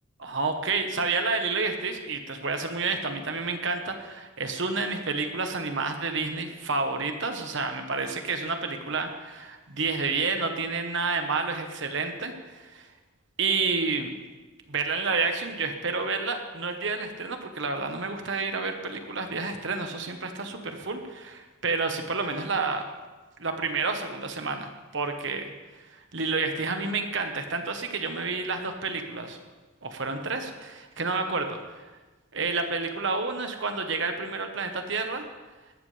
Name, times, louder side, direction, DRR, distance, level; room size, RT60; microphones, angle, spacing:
voice 1, 0.2-12.9 13.4-14.1 14.7-22.8 23.4-25.4 25.9-29.4 29.8-31.9 32.3-35.2, right 4 dB, 60° right, 5 dB, 1.3 m, -29 dB
19.0 x 13.0 x 3.4 m, 1.2 s
head